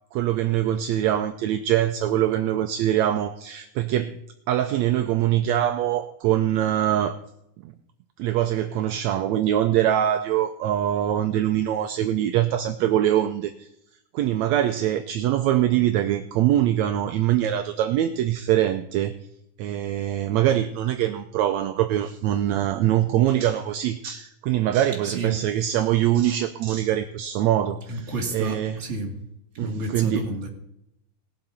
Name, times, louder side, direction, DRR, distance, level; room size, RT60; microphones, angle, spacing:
voice 1, 0.1-4.2 4.5-7.1 7.6-7.7 8.2-13.7 14.1-19.1 19.6-28.8 29.6-30.3, right 12 dB, 75° right, 8 dB, 1.7 m, -23 dB
voice 2, 25.0-25.4 27.9-29.2 29.6-30.5, right 2 dB, 25° right, -1 dB, 2.3 m, -30 dB
19.0 x 7.7 x 4.3 m, 0.80 s
omnidirectional pair, 3.5 m